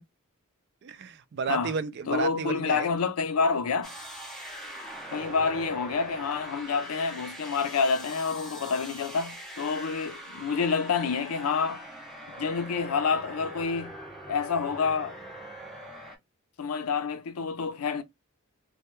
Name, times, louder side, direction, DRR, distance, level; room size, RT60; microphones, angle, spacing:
voice 1, 0.8-2.9, right 6 dB, 50° right, 0.3 m, -32 dB
voice 2, 2.1-3.9 5.1-11.8 12.4-13.9 14.3-15.2 16.6-18.0, left 5 dB, 80° left, 0.5 m, -28 dB
sound 1, 3.8-16.2, right 1 dB, ahead, 0.5 m, -42 dB
2.2 x 2.2 x 2.9 m
head